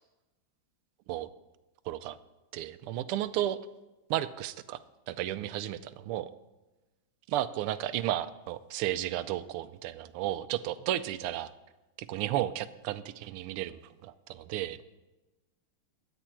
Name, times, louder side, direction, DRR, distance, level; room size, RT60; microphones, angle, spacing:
voice 1, 1.9-2.2 2.5-3.6 4.1-4.8 5.1-6.3 7.3-11.5 12.0-14.8, right 13 dB, 90° right, 13 dB, 1.5 m, -33 dB
11.5 x 9.0 x 4.4 m, 1.1 s
omnidirectional pair, 2.4 m